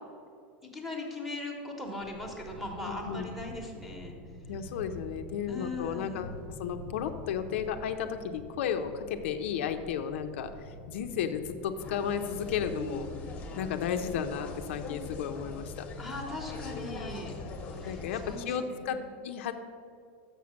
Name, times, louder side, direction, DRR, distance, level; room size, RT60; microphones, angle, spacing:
voice 1, 0.6-4.1 5.5-6.3 16.0-17.3 17.7-19.0, left 2 dB, ahead, 1 dB, 1.0 m, -39 dB
sound 1, 2.0-17.6, left 1 dB, 60° right, 1.0 m, -48 dB
voice 2, 2.8-3.3 4.5-13.1 13.6-15.9 17.8-19.5, left 8 dB, 80° left, 7 dB, 0.6 m, -34 dB
sound 2, 11.8-18.4, left 3 dB, 20° left, 1.0 m, -41 dB
6.8 x 5.9 x 6.2 m, 2.3 s
supercardioid pair, 165°, 7 cm